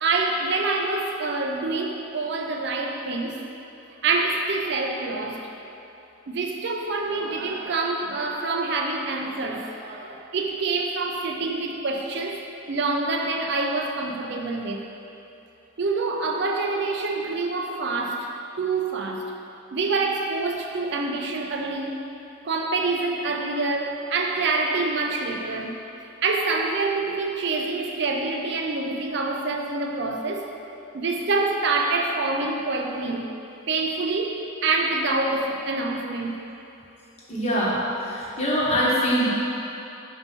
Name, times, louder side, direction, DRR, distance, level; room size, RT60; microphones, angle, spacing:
voice 1, 0.0-3.4 4.0-5.4 6.3-12.4 12.7-14.8 15.8-18.3 18.6-19.3 19.7-22.0 22.4-25.7 26.2-30.5 30.9-33.3 33.7-36.4, right 3 dB, 55° right, 2 dB, 0.5 m, -26 dB
voice 2, 37.3-39.3, equal, 30° left, -6 dB, 1.1 m, -23 dB
5.6 x 4.4 x 5.5 m, 2.9 s
head